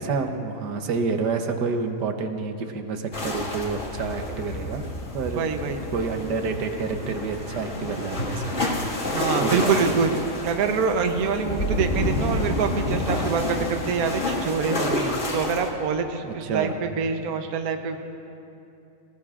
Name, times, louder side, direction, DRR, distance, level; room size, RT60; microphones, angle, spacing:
voice 1, 0.0-5.5 5.9-8.6 9.4-9.8 16.2-16.8, right 4 dB, 90° right, 5 dB, 1.6 m, -28 dB
sound 1, 3.1-15.7, left 1 dB, 45° left, 2.2 m, -29 dB
voice 2, 5.3-5.8 9.1-10.1 10.4-18.0, right 5 dB, 65° right, 6 dB, 1.3 m, -25 dB
29.0 x 18.5 x 2.5 m, 2.7 s
omnidirectional pair, 1.7 m